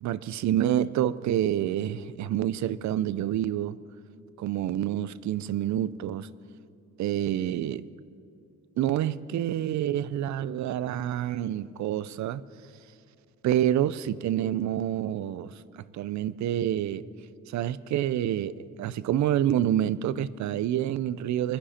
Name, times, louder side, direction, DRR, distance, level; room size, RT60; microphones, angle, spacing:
voice 1, 0.0-3.8 4.4-6.3 7.0-7.9 8.8-12.4 13.4-15.6 15.9-17.1 17.5-21.6, right 11 dB, 70° right, 0.6 m, -27 dB
24.5 x 10.0 x 4.3 m
cardioid pair, 90°, 30 cm